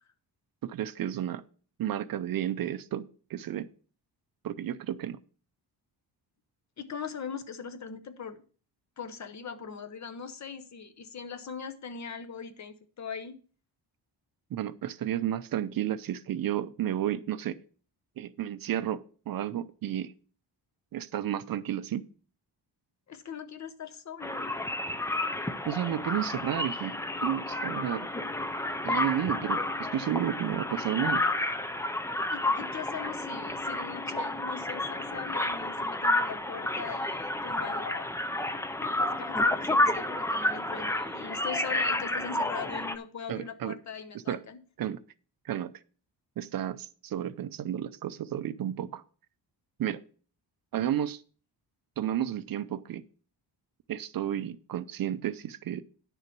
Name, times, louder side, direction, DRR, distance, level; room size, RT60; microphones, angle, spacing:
voice 1, 0.6-1.4 1.8-3.7 4.4-5.2 14.5-17.6 18.2-20.1 20.9-22.0 25.7-27.0 27.2-28.1 28.8-31.2 43.3-43.7 44.3-44.4 44.8-45.0 45.4-45.7 46.4-49.0 49.8-50.0 50.7-51.2 52.0-53.0 53.9-55.8, right 11 dB, 55° right, 0.6 m, -32 dB
voice 2, 6.8-8.4 9.0-13.4 23.1-24.5 32.3-38.1 38.8-44.6, left 6 dB, 40° left, 0.9 m, -40 dB
sound 1, 24.2-43.0, left 1 dB, 5° left, 0.4 m, -30 dB
10.0 x 6.7 x 4.5 m
wide cardioid pair, 160°, 41 cm